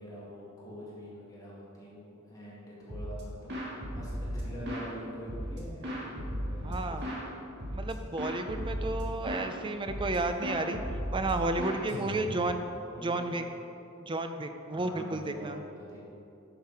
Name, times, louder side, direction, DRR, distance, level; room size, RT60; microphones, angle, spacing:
voice 1, 0.0-7.2 11.9-12.5 12.8-13.4 14.7-16.0, equal, 15° left, -7 dB, 2.1 m, -45 dB
sound 1, 2.9-3.2 3.5-4.9 5.3-7.3 7.6-9.5 9.9-10.2 10.4-12.5, equal, 55° right, 1.8 m, -36 dB
voice 2, 6.6-7.1 7.7-10.8 11.1-12.6 13.0-13.4 14.0-15.6, right 2 dB, 25° right, 7 dB, 0.5 m, -32 dB
11.0 x 6.7 x 4.8 m, 2.8 s
head